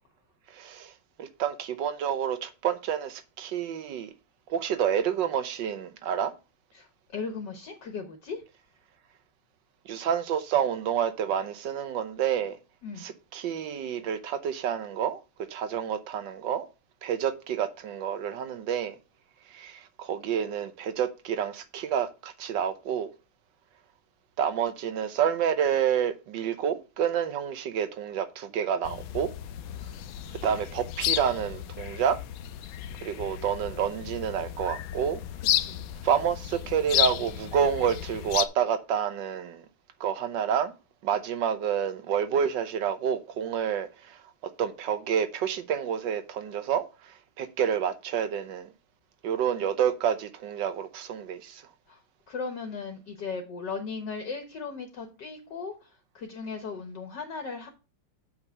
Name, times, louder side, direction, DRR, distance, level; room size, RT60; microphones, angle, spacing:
voice 1, 0.5-0.9 1.2-4.1 4.5-6.3 9.8-12.6 13.0-15.2 15.5-16.7 17.0-18.9 19.5-23.1 24.4-29.3 30.4-32.2 33.0-35.2 36.0-39.6 40.0-40.7 41.0-44.2 44.6-48.7 49.2-51.6, right 8 dB, 65° right, 1.4 m, -29 dB
voice 2, 6.7-8.4 12.8-13.0 35.4-35.8 51.9-52.0 52.3-57.7, left 4 dB, 55° left, 1.6 m, -37 dB
sound 1, 28.8-38.5, left 12 dB, 75° left, 1.3 m, -33 dB
7.2 x 5.4 x 5.4 m
omnidirectional pair, 2.4 m